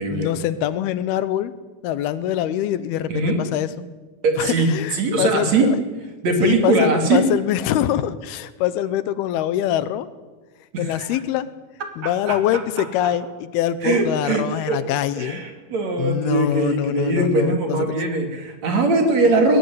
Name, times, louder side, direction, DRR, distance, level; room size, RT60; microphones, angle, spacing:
voice 1, 0.1-1.5 1.8-3.7 4.4-5.8 6.4-10.1 10.8-11.5 12.0-15.4 16.0-18.0, left 12 dB, 85° left, 15 dB, 2.9 m, -24 dB
voice 2, 3.1-3.4 4.2-5.7 6.2-7.2 10.7-11.1 12.0-12.6 13.8-14.8 15.2-19.6, right 3 dB, 50° right, 4 dB, 3.6 m, -21 dB
20.5 x 16.5 x 9.8 m, 1.3 s
omnidirectional pair, 4.4 m